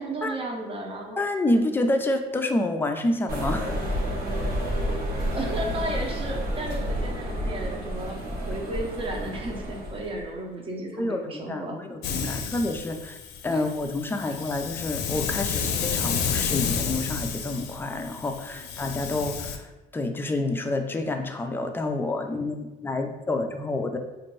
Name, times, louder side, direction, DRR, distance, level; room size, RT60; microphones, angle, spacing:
voice 1, 0.0-1.3 5.3-8.2 8.5-11.7 12.2-12.5 13.5-13.6, right 2 dB, 30° right, 0 dB, 0.8 m, -34 dB
voice 2, 1.2-3.9 11.0-13.2 13.4-24.0, left 2 dB, 15° left, 5 dB, 0.4 m, -28 dB
sound 1, 3.3-10.2, equal, 60° right, 1.0 m, -30 dB
Hiss, 12.0-19.6, left 6 dB, 80° left, 0.5 m, -31 dB
4.2 x 2.5 x 3.1 m, 1.1 s
cardioid pair, 110°, 17 cm